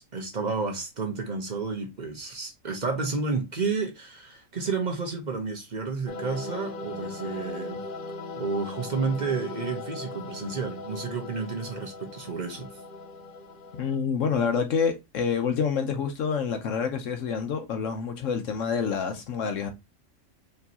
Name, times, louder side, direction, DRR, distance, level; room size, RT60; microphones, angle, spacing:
voice 1, 0.0-7.8 8.4-12.7, right 4 dB, 40° right, 0.9 m, -31 dB
sound 1, 6.1-14.0, left 2 dB, 50° left, 0.8 m, -38 dB
voice 2, 13.8-19.7, left 6 dB, 70° left, 1.0 m, -27 dB
4.5 x 3.1 x 2.7 m
omnidirectional pair, 1.4 m